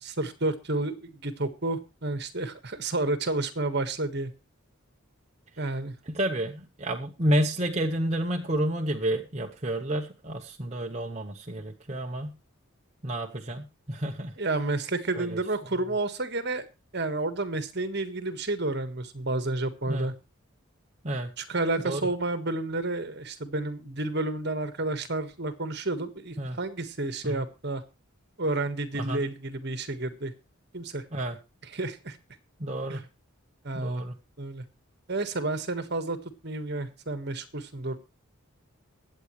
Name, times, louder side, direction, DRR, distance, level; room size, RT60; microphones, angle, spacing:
voice 1, 0.0-4.3 5.6-5.9 14.4-16.6 16.9-20.1 21.4-27.8 28.4-30.3 30.7-31.0 31.6-32.2 32.9-33.0 33.6-34.0 34.4-34.6 35.1-36.2 36.4-38.0, right 2 dB, 50° right, 10 dB, 1.5 m, -30 dB
voice 2, 6.1-12.3 13.0-14.3 15.2-15.4 19.9-20.1 21.0-21.3 21.8-22.1 26.4-26.6 27.3-27.4 29.1-29.2 31.1-31.4 32.6-33.0 33.7-34.1, right 1 dB, 30° right, 1 dB, 0.9 m, -30 dB
22.5 x 8.5 x 3.2 m, 0.29 s
head